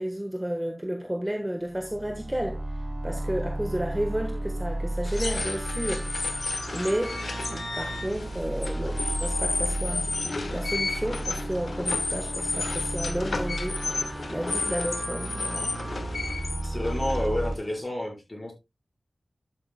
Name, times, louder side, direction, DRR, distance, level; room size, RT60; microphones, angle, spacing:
voice 1, 0.0-2.6 3.0-6.1 6.7-10.1 10.5-13.8 14.3-15.7, right 1 dB, 10° right, 1.3 m, -32 dB
sound 1, 1.7-17.5, right 1 dB, 30° right, 0.8 m, -33 dB
sound 2, 5.0-17.8, left 3 dB, 70° left, 1.4 m, -32 dB
voice 2, 16.6-18.5, left 1 dB, 25° left, 5.1 m, -30 dB
12.0 x 8.6 x 2.2 m
wide cardioid pair, 90°, 0 cm